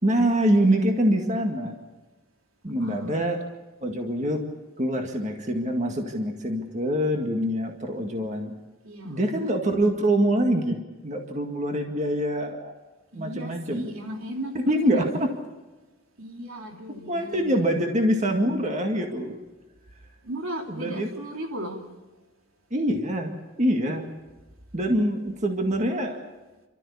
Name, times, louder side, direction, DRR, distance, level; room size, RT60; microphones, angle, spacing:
voice 1, 0.0-1.7 2.6-3.4 3.8-4.4 4.8-8.6 9.0-12.8 13.1-13.9 14.7-15.3 17.1-19.4 20.7-21.1 22.7-23.3 23.6-24.1 24.7-26.2, right 1 dB, 35° right, 3 dB, 2.0 m, -25 dB
voice 2, 2.8-3.2 8.8-9.2 13.1-15.3 16.2-17.6 20.2-21.9, right 1 dB, 75° right, 2 dB, 3.1 m, -36 dB
30.0 x 13.5 x 8.5 m, 1.2 s
head